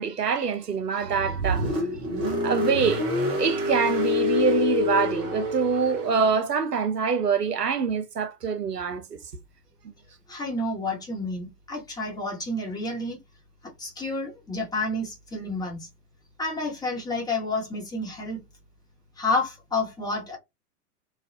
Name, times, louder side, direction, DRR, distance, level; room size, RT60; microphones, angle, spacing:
voice 1, 0.0-1.7 2.4-3.0 3.3-9.2, right 6 dB, 90° right, 0.6 m, -25 dB
Car, 1.0-6.5, left 2 dB, 15° right, 0.4 m, -27 dB
voice 2, 10.3-13.2 13.6-15.9 16.4-18.4 19.2-20.4, left 2 dB, 10° left, 1.0 m, -30 dB
3.1 x 2.3 x 2.6 m
figure-of-eight pair, 100°, 46 cm